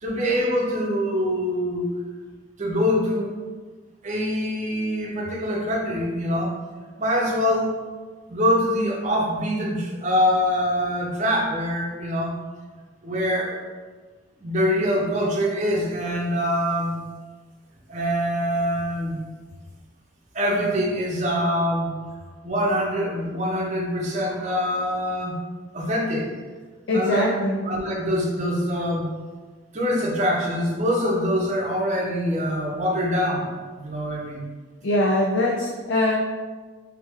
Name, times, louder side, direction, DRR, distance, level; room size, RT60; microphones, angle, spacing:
voice 1, 0.0-1.9 2.6-3.3 4.0-6.6 7.0-7.8 8.3-12.3 13.0-13.6 14.4-17.0 17.9-19.2 20.3-21.9 22.4-25.4 25.7-26.3 26.9-27.2 27.7-29.1 29.7-33.5 33.8-34.4, equal, 35° right, -2 dB, 0.7 m, -24 dB
voice 2, 26.9-27.7 34.8-36.1, left 1 dB, 65° left, -2 dB, 0.4 m, -22 dB
3.3 x 3.2 x 3.5 m, 1.4 s
head